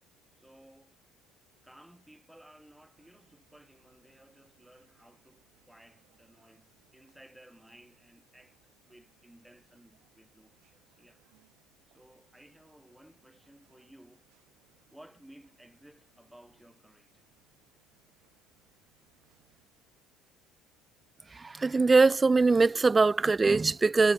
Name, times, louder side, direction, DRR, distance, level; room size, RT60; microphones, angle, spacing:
voice 1, 0.4-1.0 1.6-11.2 11.9-14.3 14.9-17.2, right 1 dB, 5° right, 6.6 m, -57 dB
sound 1, 3.0-19.6, right 25 dB, 80° right, 7.8 m, -72 dB
voice 2, 21.3-24.1, right 3 dB, 20° right, 0.3 m, -22 dB
cardioid pair, 110°, 0 cm